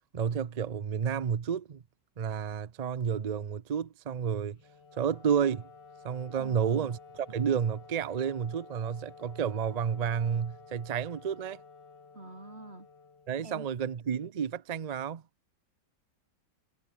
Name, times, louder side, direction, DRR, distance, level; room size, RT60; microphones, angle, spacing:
voice 1, 0.1-1.8 2.2-4.6 5.0-5.7 6.0-11.6 13.3-15.2, right 7 dB, 75° right, 0.3 m, -31 dB
Wind instrument woodwind instrument, 4.5-13.8, left 4 dB, 80° left, 3.7 m, -53 dB
voice 2, 6.4-6.9 12.1-12.9 13.4-13.7, right 2 dB, 35° right, 5.8 m, -46 dB
omnidirectional pair, 1.9 m